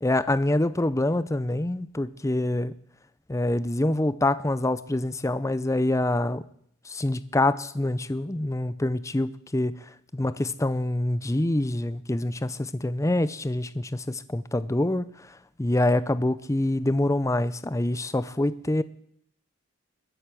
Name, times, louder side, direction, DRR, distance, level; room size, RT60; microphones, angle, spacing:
voice 1, 0.0-2.7 3.3-6.4 6.9-9.7 10.1-15.1 15.6-18.8, left 1 dB, 15° left, 0.5 m, -25 dB
21.5 x 8.1 x 7.6 m
head